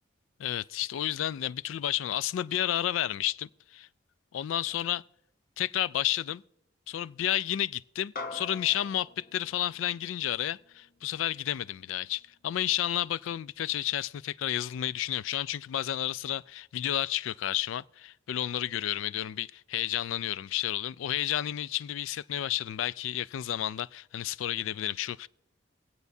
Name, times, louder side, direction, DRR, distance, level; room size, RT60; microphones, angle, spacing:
voice 1, 0.4-3.9 4.3-5.0 5.6-6.4 6.9-25.3, left 12 dB, 80° left, 0.3 m, -31 dB
sound 1, 8.2-12.8, left 3 dB, 45° left, 0.8 m, -46 dB
23.5 x 8.1 x 2.7 m
head